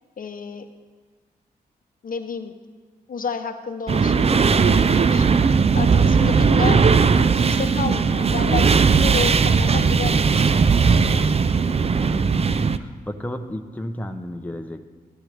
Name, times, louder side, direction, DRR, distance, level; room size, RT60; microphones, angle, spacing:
voice 1, 0.2-0.7 2.0-2.5 3.1-5.4 5.7-6.8 7.2-11.2, left 5 dB, 55° left, 7 dB, 0.8 m, -31 dB
sound 1, 3.9-12.8, right 5 dB, 35° right, 0.4 m, -18 dB
voice 2, 12.0-12.5 12.8-14.9, left 1 dB, 10° left, 6 dB, 0.7 m, -33 dB
12.0 x 11.5 x 3.4 m, 1.4 s
cardioid pair, 65°, 17 cm